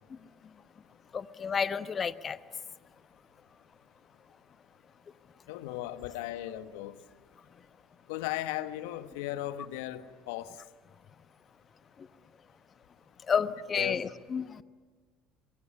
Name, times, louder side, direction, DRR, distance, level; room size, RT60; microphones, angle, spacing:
voice 1, 1.1-2.4 13.3-14.6, left 6 dB, 35° left, 14 dB, 1.1 m, -30 dB
voice 2, 5.5-6.9 8.1-10.6 13.7-14.0, left 14 dB, 75° left, 12 dB, 1.2 m, -36 dB
23.5 x 23.0 x 9.9 m, 1.5 s
hypercardioid pair, 65°, 0 cm